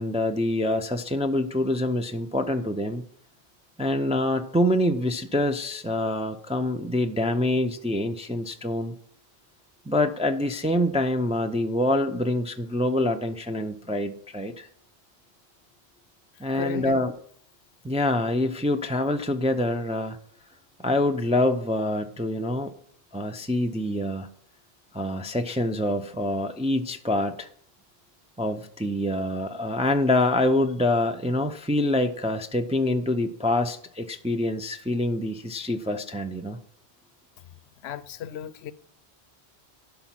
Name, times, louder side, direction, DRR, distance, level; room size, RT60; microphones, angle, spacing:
voice 1, 0.0-3.0 3.8-8.9 9.9-14.7 16.4-17.1 17.8-20.2 20.8-22.7 23.1-24.3 24.9-27.5 28.4-36.6, left 1 dB, 10° right, 0.4 m, -26 dB
voice 2, 16.5-17.1 37.8-38.7, left 9 dB, 80° left, 0.8 m, -34 dB
11.5 x 5.5 x 5.8 m
omnidirectional pair, 1.1 m